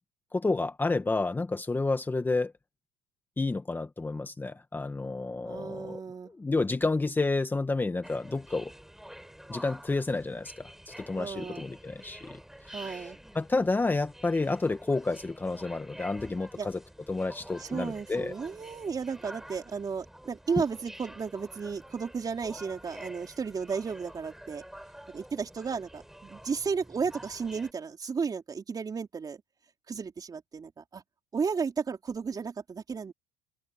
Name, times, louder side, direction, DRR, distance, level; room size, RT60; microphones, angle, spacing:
voice 1, 0.3-2.5 3.4-6.0 6.3-8.7 9.5-12.4 12.7-13.0 13.4-16.8 17.1-18.3, left 3 dB, 15° left, 1.8 m, -30 dB
voice 2, 5.4-6.3 11.2-11.6 12.7-13.2 16.6-16.7 17.6-24.6 25.1-29.4 29.9-31.0 31.3-33.1, right 5 dB, 25° right, 3.9 m, -34 dB
sound 1, 8.0-27.7, equal, ahead, 6.5 m, -48 dB
supercardioid pair, 100°, 14 cm